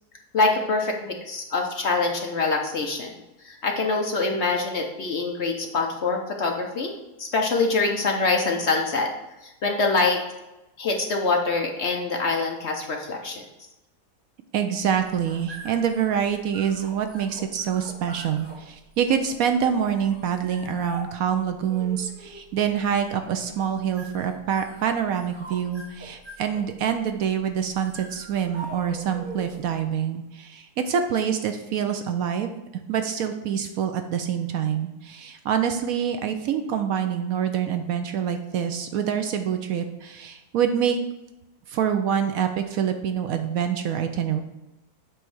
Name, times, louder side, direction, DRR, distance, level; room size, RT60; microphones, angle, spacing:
voice 1, 0.3-3.1 3.4-6.9 7.2-9.1 9.6-10.2 10.8-13.4, left 3 dB, 55° left, 2 dB, 0.9 m, -24 dB
voice 2, 14.5-32.5 32.9-41.0 41.7-44.4, right 8 dB, 70° right, 7 dB, 0.9 m, -26 dB
sound 1, 15.0-29.8, right 1 dB, 30° right, 2.1 m, -44 dB
7.9 x 3.2 x 6.1 m, 0.98 s
omnidirectional pair, 1.7 m